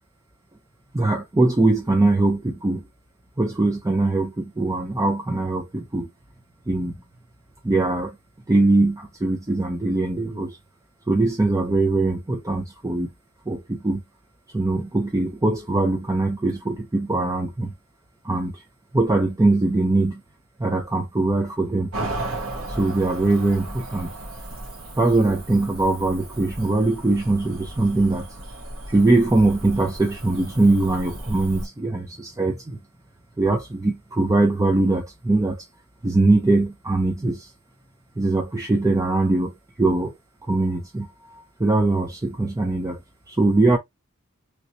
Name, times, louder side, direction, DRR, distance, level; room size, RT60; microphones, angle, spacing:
voice 1, 0.9-2.8 3.4-6.1 6.7-7.0 7.6-8.2 8.5-10.6 11.1-13.1 13.5-14.0 14.5-17.7 18.2-18.6 18.9-20.2 20.6-21.9 22.8-24.1 25.0-28.3 28.9-32.8 33.4-35.6 36.0-37.5 38.2-40.2 40.4-43.0 43.3-43.8, right 2 dB, 15° right, 0.5 m, -21 dB
Cricket / Motor vehicle (road), 21.9-31.7, right 1 dB, 65° right, 1.4 m, -35 dB
3.2 x 2.9 x 2.6 m
head